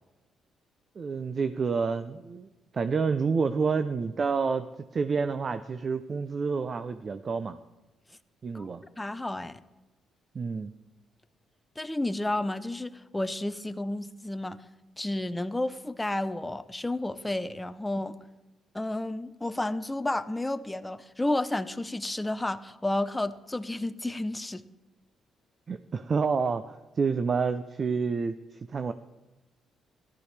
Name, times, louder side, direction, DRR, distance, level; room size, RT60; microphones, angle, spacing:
voice 1, 1.0-2.5 2.7-4.7 4.9-7.6 8.4-8.8 10.3-10.7 25.7-28.9, right 5 dB, 40° right, 11 dB, 0.5 m, -29 dB
voice 2, 9.0-9.6 11.8-14.6 15.0-18.1 18.7-24.6, left 1 dB, 10° left, 12 dB, 0.6 m, -31 dB
14.0 x 12.0 x 3.3 m, 1.1 s
cardioid pair, 90°, 0 cm